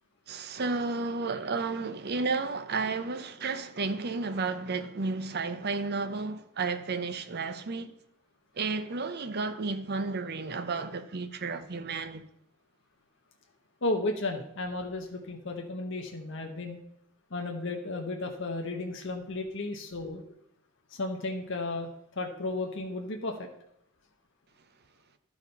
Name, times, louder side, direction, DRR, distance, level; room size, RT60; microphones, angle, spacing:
voice 1, 0.3-7.9 8.6-12.2, right 4 dB, 50° right, 0.7 m, -32 dB
voice 2, 13.8-16.8 17.3-20.2 20.9-21.9 22.2-23.5, left 2 dB, 60° left, 1.0 m, -34 dB
11.5 x 5.0 x 5.3 m
head